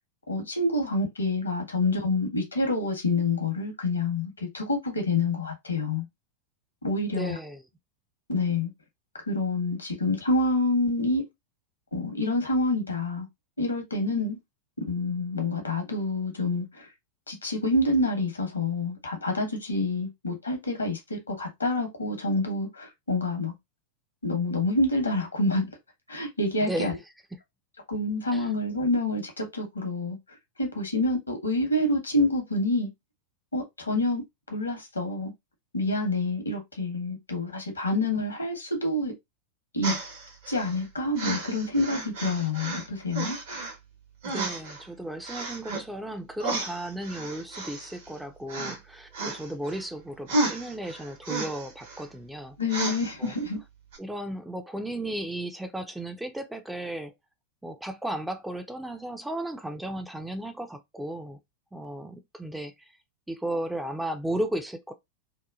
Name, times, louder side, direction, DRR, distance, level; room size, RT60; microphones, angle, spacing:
voice 1, 0.3-6.1 6.8-7.4 8.3-8.7 9.3-11.2 11.9-13.3 13.6-14.4 14.9-16.9 17.3-23.5 24.2-25.7 26.1-26.9 27.9-30.2 30.6-32.9 33.5-34.2 34.5-35.3 35.7-39.1 39.7-40.0 40.5-43.4 52.6-53.6, left 2 dB, 80° left, 0.9 m, -27 dB
voice 2, 7.1-7.6 26.6-26.9 28.3-28.5 44.2-52.6 53.2-53.3 54.0-57.1 57.6-61.4 61.7-62.9 63.3-64.9, right 1 dB, 5° right, 0.4 m, -35 dB
sound 1, 39.8-40.8 41.2-42.9 43.1-43.7 44.2-44.8 45.2-45.8 46.4-48.2 48.5-48.8 49.1-49.8 50.3-52.0 52.7-53.3 53.9-54.0, right 2 dB, 60° right, 1.0 m, -32 dB
2.8 x 2.2 x 2.3 m
figure-of-eight pair, 90°, 0 cm